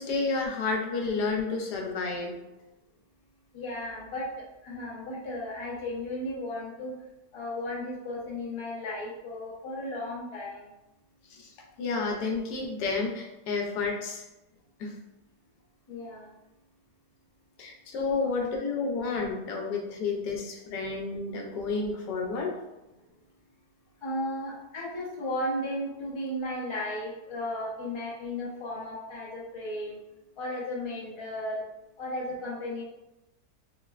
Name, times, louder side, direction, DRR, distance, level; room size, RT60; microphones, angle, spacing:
voice 1, 0.0-2.4 11.3-11.5 11.8-14.2 14.8-15.0 17.6-22.6, left 4 dB, 80° left, 1 dB, 1.1 m, -31 dB
voice 2, 3.5-4.3 4.6-6.9 7.3-10.7 15.9-16.4 18.2-18.5 24.0-30.0 30.4-31.6 32.0-32.8, left 1 dB, 50° left, -6 dB, 0.3 m, -35 dB
3.6 x 2.1 x 2.3 m, 0.96 s
omnidirectional pair, 1.8 m